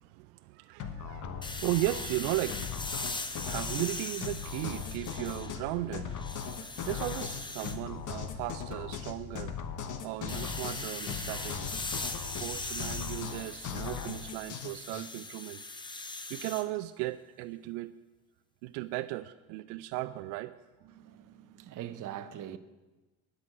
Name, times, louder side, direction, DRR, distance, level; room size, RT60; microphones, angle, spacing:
voice 1, 0.0-6.3 6.6-9.6 10.0-11.7 12.4-15.6 16.3-17.9 18.6-20.6, right 17 dB, 75° right, 0.6 m, -36 dB
sound 1, 0.8-15.1, left 7 dB, 40° left, 1.1 m, -39 dB
sound 2, 1.4-5.7 6.1-7.8 10.3-16.7, left 2 dB, 10° left, 0.7 m, -40 dB
voice 2, 20.8-22.6, right 10 dB, 40° right, 0.8 m, -42 dB
11.0 x 6.4 x 7.8 m
supercardioid pair, 100°, 47 cm